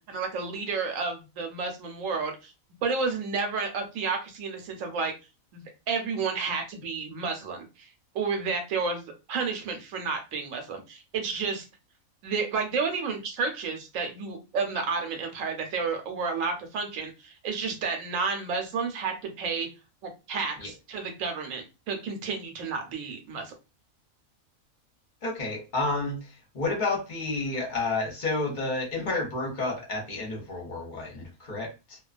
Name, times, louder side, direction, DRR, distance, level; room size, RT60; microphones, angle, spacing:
voice 1, 0.0-2.5 2.8-5.1 5.5-7.9 8.1-11.7 12.2-19.7 20.0-23.5, right 4 dB, 70° right, 4 dB, 1.0 m, -31 dB
voice 2, 25.2-32.0, left 2 dB, 45° left, 0 dB, 0.7 m, -30 dB
2.3 x 2.2 x 2.3 m, 0.28 s
omnidirectional pair, 1.5 m